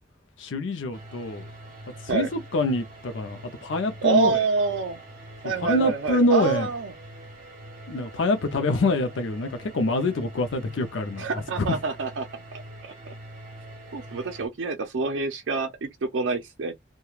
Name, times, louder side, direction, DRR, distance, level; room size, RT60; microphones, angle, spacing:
voice 1, 0.4-1.5 2.0-4.4 5.6-6.7 7.9-11.7, left 1 dB, 70° left, 0.5 m, -25 dB
sound 1, 0.9-14.5, right 1 dB, 40° right, 1.0 m, -44 dB
voice 2, 4.0-5.0 5.4-6.9 11.2-12.3 12.5-13.1 13.9-16.7, right 4 dB, 70° right, 0.5 m, -27 dB
3.1 x 2.2 x 2.3 m
head